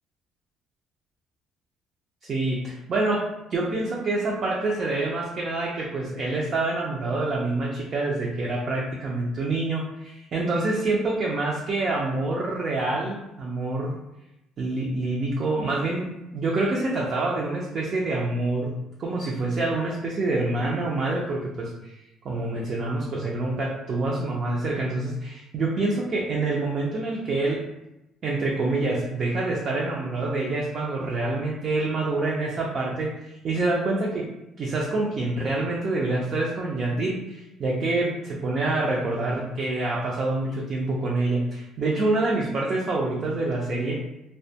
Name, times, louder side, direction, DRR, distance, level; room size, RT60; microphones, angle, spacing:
voice 1, 2.2-13.9 14.6-18.7 19.0-22.0 22.2-27.6 28.2-34.2 34.6-43.9, right 2 dB, 35° right, -3 dB, 0.4 m, -26 dB
2.4 x 2.1 x 2.7 m, 0.91 s
cardioid pair, 155°, 0 cm